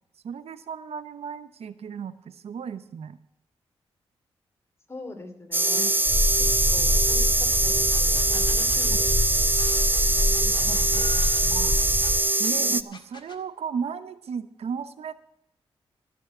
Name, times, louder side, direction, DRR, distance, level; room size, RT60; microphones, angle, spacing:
voice 1, 0.2-3.2 5.8-5.9 8.9-9.0 10.7-11.1 11.5-11.8 12.4-15.1, right 6 dB, 75° right, 13 dB, 0.8 m, -35 dB
voice 2, 4.9-5.9 6.7-9.1 10.4-11.1 11.4-11.9 12.5-12.8, left 2 dB, 25° left, 5 dB, 2.9 m, -43 dB
sound 1, 5.5-12.8, right 2 dB, 20° right, 0.6 m, -23 dB
sound 2, 6.1-12.2, left 1 dB, ahead, 1.7 m, -26 dB
sound 3, 7.5-7.6 7.9-12.5 12.9-13.4, left 4 dB, 45° left, 1.8 m, -44 dB
14.0 x 6.4 x 7.8 m, 0.77 s
cardioid pair, 60°, 10 cm